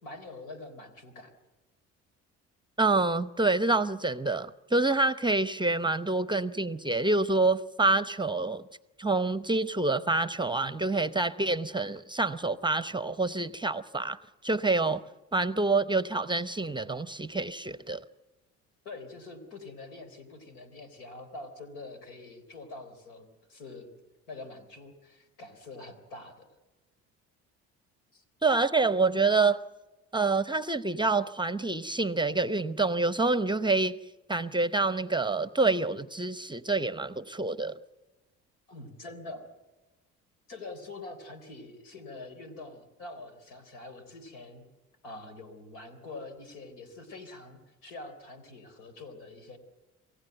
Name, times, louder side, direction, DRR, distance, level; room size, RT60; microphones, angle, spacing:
voice 1, 0.0-1.3 18.8-23.9 24.3-26.5 28.1-28.2 38.7-39.5 40.5-44.6 45.0-49.6, left 2 dB, 80° left, 8 dB, 3.9 m, -45 dB
voice 2, 2.8-8.6 9.0-14.2 14.4-15.0 15.3-18.0 28.4-29.6 30.1-34.0 34.3-37.7, right 3 dB, 15° right, 14 dB, 0.8 m, -27 dB
27.5 x 15.5 x 7.9 m, 1.1 s
hypercardioid pair, 65°, 35 cm